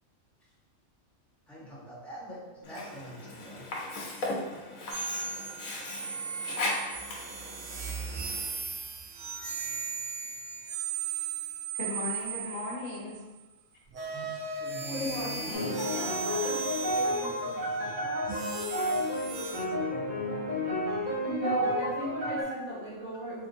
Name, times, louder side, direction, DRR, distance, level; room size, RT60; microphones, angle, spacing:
voice 1, 1.5-3.7 14.1-14.3 14.5-15.7, equal, ahead, -8 dB, 0.7 m, -43 dB
Sink (filling or washing), 2.6-8.6, left 2 dB, 90° left, 1.1 m, -37 dB
sound 1, 4.9-13.2 13.9-19.6, right 5 dB, 70° right, 0.9 m, -37 dB
voice 2, 11.7-13.2 15.2-18.4, left 2 dB, 60° left, -2 dB, 1.0 m, -39 dB
voice 3, 14.9-15.6 21.3-23.5, equal, 90° right, -11 dB, 1.4 m, -34 dB
sound 2, 15.5-22.4, equal, 40° right, 1.0 m, -31 dB
3.6 x 2.6 x 2.6 m, 1.2 s
omnidirectional pair, 1.4 m